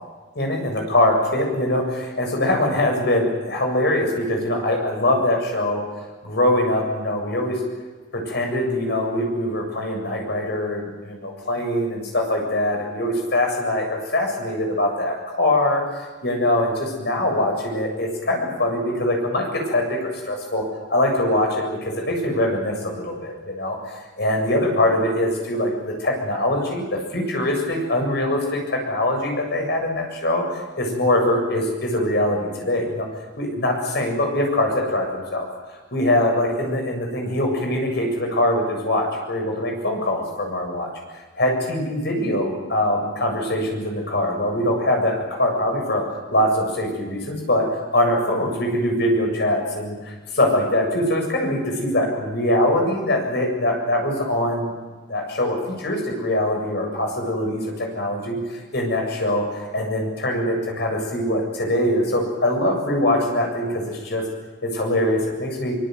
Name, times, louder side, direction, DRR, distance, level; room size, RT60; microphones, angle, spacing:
voice 1, 0.3-5.8 6.2-7.6 8.1-15.8 16.2-20.6 20.9-33.1 33.4-35.5 35.9-40.9 41.4-47.7 47.9-50.0 50.4-54.7 55.1-64.2 64.6-65.8, left 1 dB, 60° left, 2 dB, 7.6 m, -23 dB
24.0 x 23.0 x 7.9 m, 1.3 s
head